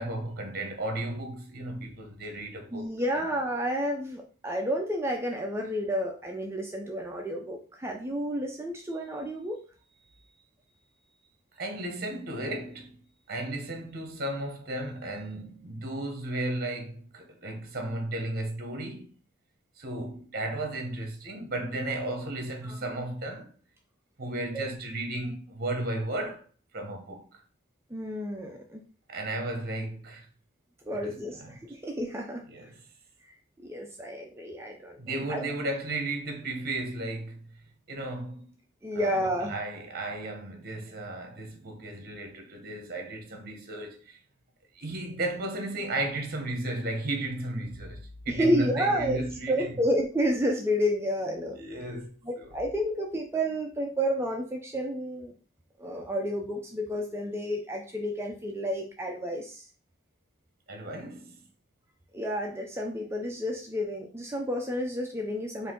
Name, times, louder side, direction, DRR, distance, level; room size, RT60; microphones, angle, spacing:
voice 1, 0.0-2.9 10.0-10.4 11.5-13.0 13.3-19.1 19.8-23.5 24.2-26.4 26.7-27.4 29.1-30.3 30.9-31.5 32.5-32.8 35.0-37.6 37.9-38.5 38.9-39.2 39.5-44.2 44.7-49.7 51.6-52.5 60.7-61.4, right 2 dB, 45° right, 1.0 m, -34 dB
voice 2, 2.7-9.6 22.6-23.0 24.5-24.6 27.9-28.8 30.9-32.4 33.3-35.5 38.8-39.5 48.3-49.2 49.5-51.6 52.2-55.3 55.8-59.7 62.1-65.7, equal, 10° right, 0.5 m, -30 dB
4.5 x 2.7 x 3.8 m
head